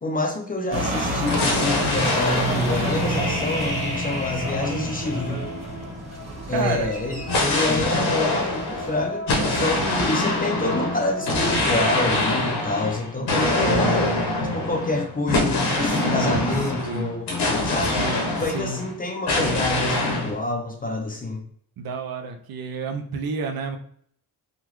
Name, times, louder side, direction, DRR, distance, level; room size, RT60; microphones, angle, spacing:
voice 1, 0.0-5.5 6.5-14.2 14.5-17.4 17.6-18.1 18.4-21.4, left 2 dB, 20° left, 3 dB, 0.5 m, -27 dB
sound 1, 0.7-9.0, right 2 dB, 15° right, 1.3 m, -31 dB
sound 2, 1.3-6.0 7.3-18.9 19.3-20.3, left 2 dB, 75° left, 1.1 m, -25 dB
sound 3, 1.5-12.4, right 1 dB, 45° right, 1.3 m, -37 dB
voice 2, 6.5-6.9 9.4-10.1 13.2-14.7 15.8-17.1 17.9-18.8 21.8-23.8, right 4 dB, 65° right, 4 dB, 0.6 m, -31 dB
3.7 x 2.3 x 3.0 m, 0.62 s
cardioid pair, 120°, 39 cm